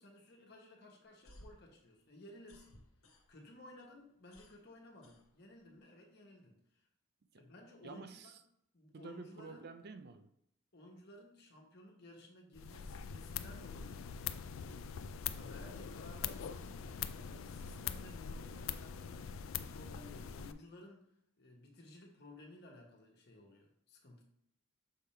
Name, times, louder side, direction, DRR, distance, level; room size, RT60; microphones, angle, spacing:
voice 1, 0.0-2.8 3.3-6.8 7.3-8.3 8.7-9.7 10.7-14.1 14.6-19.3 19.6-21.1 21.4-24.2, left 1 dB, 50° left, 1 dB, 1.3 m, -56 dB
sound 1, 1.0-3.6 3.9-5.8, left 1 dB, 90° left, 1.2 m, -60 dB
voice 2, 7.8-8.4 8.9-10.3, right 4 dB, 50° right, 9 dB, 0.4 m, -50 dB
sound 2, 12.6-20.5, left 8 dB, 70° left, 0.4 m, -43 dB
6.5 x 3.6 x 4.3 m, 0.74 s
head